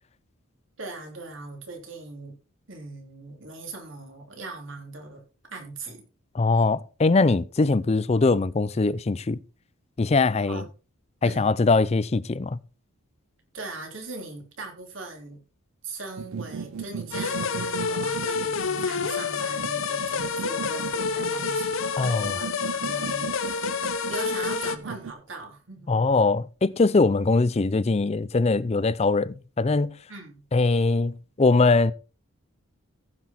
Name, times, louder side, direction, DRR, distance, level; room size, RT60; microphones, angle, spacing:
voice 1, 0.8-2.3 2.7-5.2 5.5-6.0 10.5-10.7 11.2-11.5 13.5-15.4 15.8-23.8 24.1-26.1 30.1-30.4, right 3 dB, 65° right, 3.3 m, -40 dB
voice 2, 6.3-9.4 10.0-10.6 11.2-12.6 22.0-22.4 25.9-30.0 30.5-31.9, left 3 dB, 30° left, 0.4 m, -22 dB
sound 1, 16.2-25.1, right 6 dB, 85° right, 0.5 m, -37 dB
sound 2, 17.1-24.8, left 5 dB, 70° left, 1.0 m, -28 dB
15.0 x 6.1 x 4.3 m
head